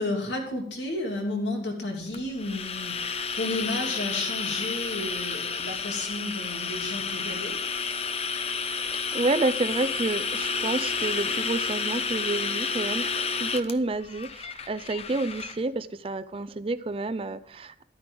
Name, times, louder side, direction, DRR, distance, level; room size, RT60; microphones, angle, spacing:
voice 1, 0.0-7.5, left 2 dB, 85° left, 1 dB, 3.0 m, -32 dB
sound 1, 2.1-15.6, left 5 dB, 35° left, 0.7 m, -31 dB
voice 2, 8.6-17.8, right 2 dB, 30° right, 12 dB, 0.4 m, -29 dB
12.0 x 9.7 x 3.8 m, 0.64 s
head